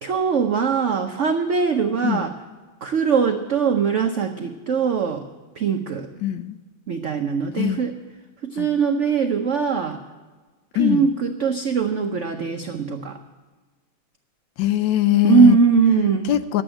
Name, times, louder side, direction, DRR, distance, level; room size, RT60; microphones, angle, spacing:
voice 1, 0.0-2.3 2.8-5.2 5.6-6.1 6.9-7.9 8.4-10.0 10.7-13.2 15.2-16.3, right 6 dB, 75° right, 5 dB, 0.6 m, -21 dB
voice 2, 6.2-6.6 7.6-7.8 8.6-8.7 10.7-11.1 14.6-15.6 16.3-16.6, left 13 dB, 75° left, 12 dB, 1.2 m, -21 dB
11.5 x 7.9 x 8.8 m, 1.3 s
omnidirectional pair, 2.2 m